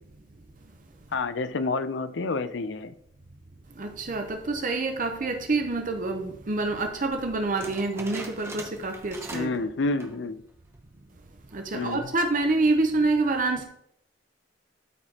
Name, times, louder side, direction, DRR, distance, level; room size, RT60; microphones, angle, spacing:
voice 1, 1.1-2.9 9.3-10.4 11.7-12.1, left 3 dB, 75° left, 0.5 m, -29 dB
voice 2, 3.8-9.5 11.5-13.6, right 3 dB, 45° right, 0.7 m, -27 dB
sound 1, 7.6-9.6 9.9-10.3 10.7-10.8 11.5-11.9, right 2 dB, 15° right, 1.0 m, -41 dB
12.5 x 4.9 x 2.9 m
head